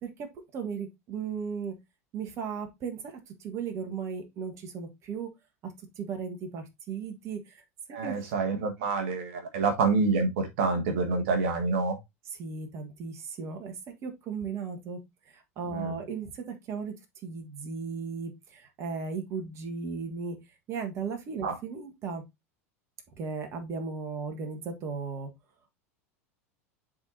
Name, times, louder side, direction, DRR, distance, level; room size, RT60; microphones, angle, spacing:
voice 1, 0.0-1.7 2.1-5.3 5.6-7.6 7.9-8.2 12.3-13.7 14.0-15.0 15.3-16.9 17.2-20.4 20.7-22.2 23.2-25.3, right 5 dB, 35° right, 1.5 m, -36 dB
voice 2, 7.9-12.0 15.7-15.9 21.4-21.5, right 4 dB, 55° right, 1.4 m, -27 dB
10.0 x 4.0 x 2.7 m
figure-of-eight pair, 80°, 8 cm